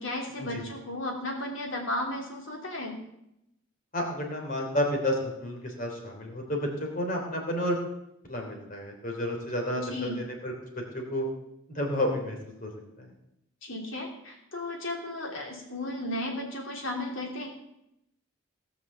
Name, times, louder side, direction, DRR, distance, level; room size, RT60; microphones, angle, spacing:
voice 1, 0.0-2.9 9.7-10.2 13.6-17.5, left 1 dB, 65° left, 0 dB, 3.0 m, -34 dB
voice 2, 3.9-7.8 8.3-11.3 11.7-12.7 13.0-13.1, left 1 dB, 40° left, 1 dB, 3.1 m, -31 dB
18.0 x 6.2 x 6.9 m, 0.83 s
head